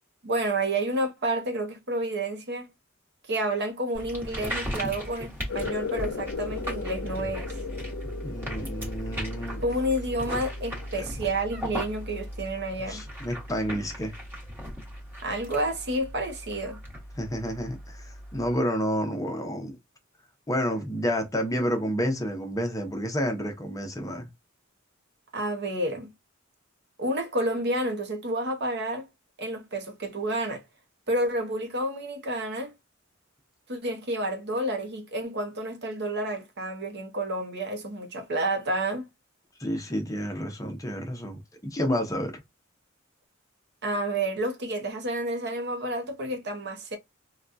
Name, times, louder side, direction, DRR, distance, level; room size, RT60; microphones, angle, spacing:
voice 1, 0.2-2.7 3.3-7.6 9.6-13.0 15.2-16.8 25.3-26.1 27.0-29.1 29.4-30.6 31.1-32.7 33.7-39.1 43.8-47.0, right 1 dB, 55° right, 0.8 m, -30 dB
sound 1, 3.9-18.6, equal, 10° right, 1.1 m, -37 dB
sound 2, 5.5-12.6, left 5 dB, 70° left, 0.5 m, -38 dB
voice 2, 8.2-9.6 10.9-11.0 12.9-14.1 17.2-19.8 20.5-24.3 39.6-42.3, equal, 15° left, 0.7 m, -30 dB
3.5 x 2.3 x 2.5 m
head